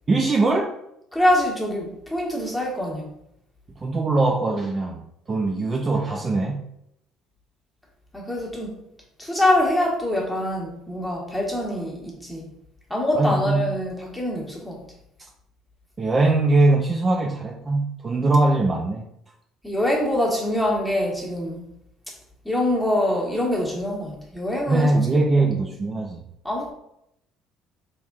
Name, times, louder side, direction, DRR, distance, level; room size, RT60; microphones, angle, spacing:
voice 1, 0.1-0.8 3.8-5.0 5.3-6.7 13.1-13.7 16.0-19.1 24.7-26.2, right 2 dB, 30° right, 1 dB, 0.4 m, -21 dB
voice 2, 1.1-3.1 8.1-8.8 9.2-12.5 12.9-14.9 19.6-21.7 22.4-25.5 26.4-26.7, left 1 dB, 5° left, -3 dB, 1.3 m, -24 dB
4.1 x 3.5 x 2.3 m, 0.79 s
supercardioid pair, 95°, 0 cm